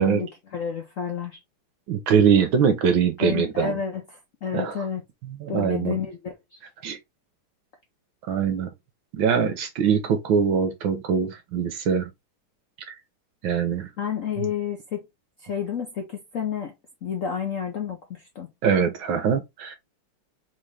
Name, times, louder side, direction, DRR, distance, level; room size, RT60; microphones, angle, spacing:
voice 1, 0.0-1.4 3.2-5.0 5.5-6.6 14.0-15.0 15.4-16.7 17.0-18.5, left 7 dB, 85° left, 0.7 m, -30 dB
voice 2, 1.9-3.8 4.5-4.9 5.3-6.0 6.8-7.0 8.2-8.7 9.1-12.1 12.9-13.0 13.4-13.9 14.4-14.5 18.6-19.8, right 7 dB, 70° right, 1.4 m, -23 dB
3.9 x 3.8 x 3.2 m
omnidirectional pair, 2.4 m